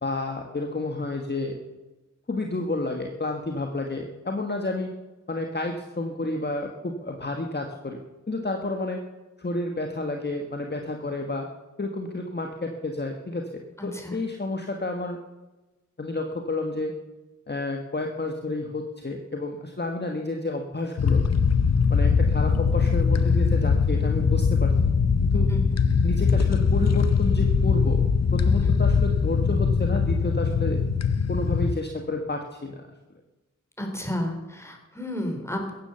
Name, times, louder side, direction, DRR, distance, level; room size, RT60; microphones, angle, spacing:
voice 1, 0.0-1.6 2.3-4.9 5.3-8.0 8.3-9.0 9.4-11.5 11.8-13.5 13.8-15.2 16.0-16.9 17.5-21.2 21.9-24.7 25.2-25.5 26.0-28.0 28.3-30.8 31.3-32.8, left 2 dB, 35° left, 2 dB, 1.5 m, -30 dB
voice 2, 13.8-14.1 25.5-25.8 28.6-28.7 33.8-35.7, left 1 dB, 10° left, 3 dB, 3.6 m, -32 dB
sound 1, 21.0-31.7, left 5 dB, 55° left, 0.8 m, -21 dB
15.0 x 9.9 x 6.9 m, 1.1 s
cardioid pair, 50°, 32 cm